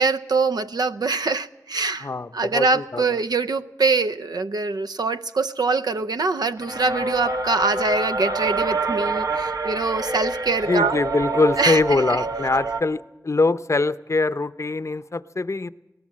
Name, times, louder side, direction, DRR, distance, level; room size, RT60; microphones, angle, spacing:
voice 1, 0.0-11.0 11.6-12.2, right 4 dB, 80° right, 10 dB, 0.6 m, -24 dB
voice 2, 2.0-3.0 10.7-15.7, left 3 dB, 45° left, 15 dB, 0.6 m, -23 dB
sound 1, 6.6-12.8, right 3 dB, 60° right, 1.3 m, -27 dB
21.0 x 17.5 x 7.5 m, 1.0 s
cardioid pair, 45°, 7 cm